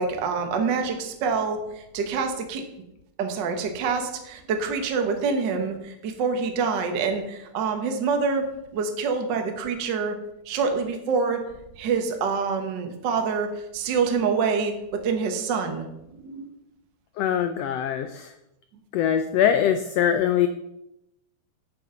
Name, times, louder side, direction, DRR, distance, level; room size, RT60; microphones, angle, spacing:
voice 1, 0.0-2.6 3.2-8.5 8.7-10.2 10.5-11.4 11.8-15.8 16.2-16.5, right 5 dB, 55° right, 5 dB, 1.3 m, -26 dB
voice 2, 17.2-18.3 18.9-20.5, left 9 dB, 90° left, 9 dB, 1.4 m, -22 dB
8.4 x 7.8 x 5.6 m, 0.86 s
omnidirectional pair, 3.5 m